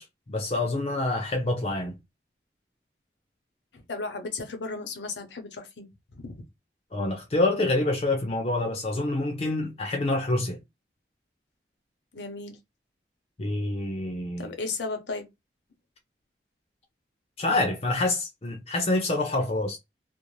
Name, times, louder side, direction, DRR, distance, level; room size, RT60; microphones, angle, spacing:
voice 1, 0.0-2.0 6.9-10.6 13.4-14.5 17.4-19.8, left 2 dB, 35° left, 0.4 m, -27 dB
voice 2, 3.7-5.9 6.2-6.4 12.1-12.6 14.4-15.3, left 3 dB, 85° left, 0.7 m, -35 dB
2.5 x 2.0 x 3.0 m
head